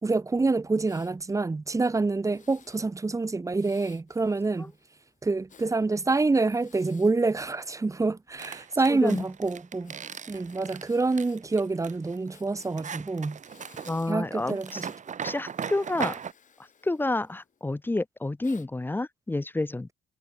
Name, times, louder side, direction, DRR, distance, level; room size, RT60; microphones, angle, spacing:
voice 1, 0.0-4.7 5.2-10.0 10.3-13.4 14.1-14.9, right 3 dB, 15° right, 1.1 m, -27 dB
Breathing, 0.9-1.1 2.2-2.9 3.6-5.7 6.5-8.1 9.0-11.4 11.7-11.8 12.3-13.0 13.4-14.2 14.5-15.0 15.4-17.6 18.4-18.7, left 7 dB, 40° left, 6.0 m, -58 dB
sound 1, 8.4-16.3, right 7 dB, 40° right, 2.0 m, -38 dB
voice 2, 8.9-9.2 13.9-14.8 15.2-16.2 16.8-19.9, left 2 dB, 10° left, 0.7 m, -29 dB
cardioid pair, 135°, 20 cm